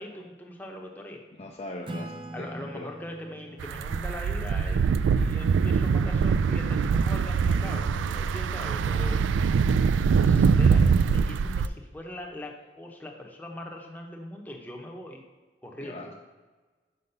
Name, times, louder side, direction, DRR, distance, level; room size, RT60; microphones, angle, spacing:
voice 1, 0.0-1.2 2.3-9.3 9.9-15.2 15.6-16.2, left 1 dB, 10° left, 1 dB, 0.8 m, -41 dB
voice 2, 1.4-2.9 15.8-16.1, left 2 dB, 35° left, 1 dB, 0.5 m, -40 dB
Acoustic guitar / Strum, 1.9-6.8, right 1 dB, 25° right, 0.6 m, -44 dB
sound 1, 3.6-11.7, right 5 dB, 85° right, 0.3 m, -23 dB
5.6 x 5.1 x 6.6 m, 1.3 s
head